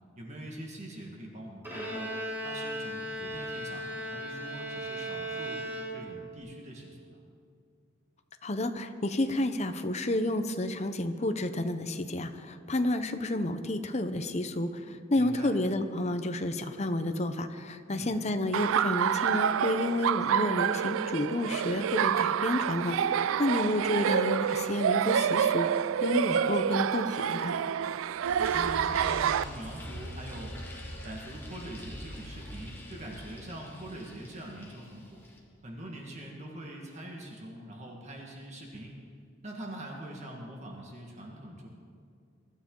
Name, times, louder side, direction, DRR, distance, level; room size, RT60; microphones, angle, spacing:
voice 1, 0.2-5.6 5.9-7.2 15.1-15.5 17.9-18.1 28.3-30.6 31.0-35.2 35.6-38.9 39.4-41.7, right 1 dB, 35° right, -1 dB, 1.7 m, -43 dB
Bowed string instrument, 1.6-6.4, right 1 dB, 10° right, 4.8 m, -37 dB
voice 2, 8.4-25.7 26.0-27.5, left 1 dB, 35° left, 8 dB, 0.8 m, -30 dB
Laughter, 18.5-29.4, right 8 dB, 90° right, 0.3 m, -28 dB
sound 1, 28.2-35.4, equal, 10° left, 2.1 m, -44 dB
23.5 x 12.5 x 3.9 m, 2.3 s
head